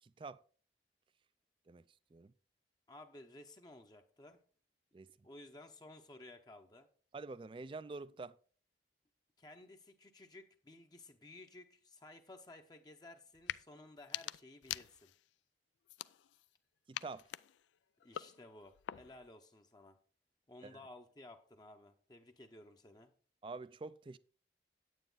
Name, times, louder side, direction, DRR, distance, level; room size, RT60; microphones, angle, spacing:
voice 1, 0.0-0.4 1.7-2.3 4.9-5.3 7.1-8.4 16.9-17.2 20.6-20.8 23.4-24.2, right 3 dB, 30° right, 0.3 m, -47 dB
voice 2, 2.9-4.4 5.2-6.9 9.4-15.1 18.0-20.0 20.5-23.1, left 2 dB, 20° left, 0.7 m, -56 dB
sound 1, 13.3-13.6 14.0-15.3 15.9-16.5 16.9-19.3, left 11 dB, 90° left, 0.3 m, -45 dB
9.2 x 8.8 x 3.9 m
head